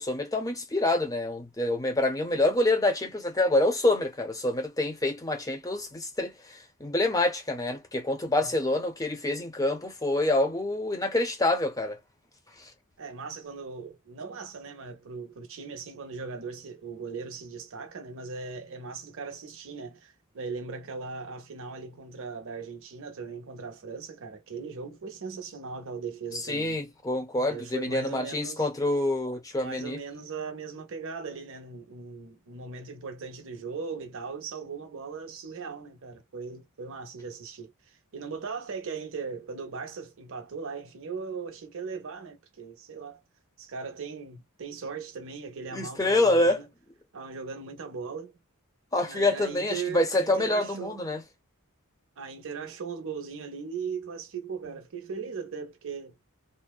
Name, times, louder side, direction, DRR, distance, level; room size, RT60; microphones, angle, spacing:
voice 1, 0.0-12.0 26.3-30.0 45.7-46.6 48.9-51.2, left 2 dB, 15° left, 0.7 m, -26 dB
voice 2, 13.0-26.8 27.5-28.7 29.6-43.2 43.6-46.6 47.1-48.3 49.0-51.0 52.2-56.1, right 5 dB, 65° right, 0.7 m, -38 dB
2.7 x 2.1 x 2.2 m
head